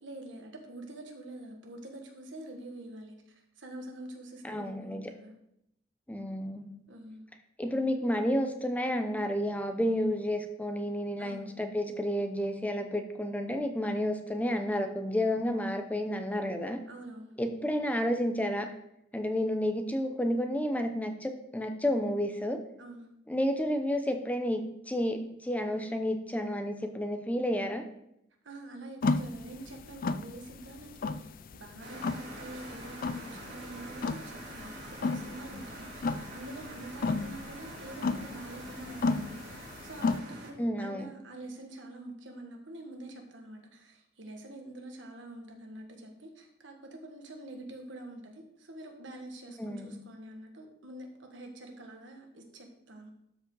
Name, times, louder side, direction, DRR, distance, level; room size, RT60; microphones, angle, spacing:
voice 1, 0.0-5.3 6.9-7.3 11.2-11.6 16.9-17.4 22.8-23.1 28.4-53.1, right 1 dB, 70° right, 3 dB, 1.6 m, -46 dB
voice 2, 4.4-5.0 6.1-6.7 7.6-16.8 17.4-18.7 19.1-22.6 23.3-27.8 40.6-41.1 49.6-50.0, equal, 10° left, 6 dB, 0.7 m, -31 dB
sound 1, 29.0-40.2, left 3 dB, 50° left, 0.4 m, -34 dB
sound 2, 31.8-40.5, right 1 dB, 50° right, 3.5 m, -45 dB
12.5 x 5.0 x 3.9 m, 0.78 s
head